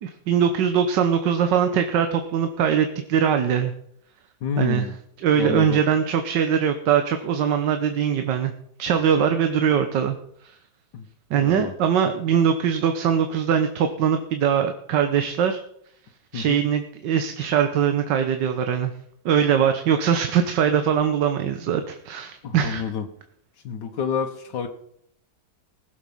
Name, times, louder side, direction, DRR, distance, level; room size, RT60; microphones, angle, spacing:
voice 1, 0.0-3.7 4.6-4.8 5.2-8.5 8.8-10.2 11.3-15.6 16.3-18.9 19.2-22.8, right 8 dB, 90° right, 7 dB, 1.6 m, -21 dB
voice 2, 4.4-5.0 5.3-5.8 10.9-11.1 11.4-11.7 16.3-16.7 22.4-23.1 23.6-24.7, left 6 dB, 90° left, 3 dB, 1.7 m, -29 dB
19.5 x 7.4 x 5.4 m, 0.71 s
omnidirectional pair, 1.8 m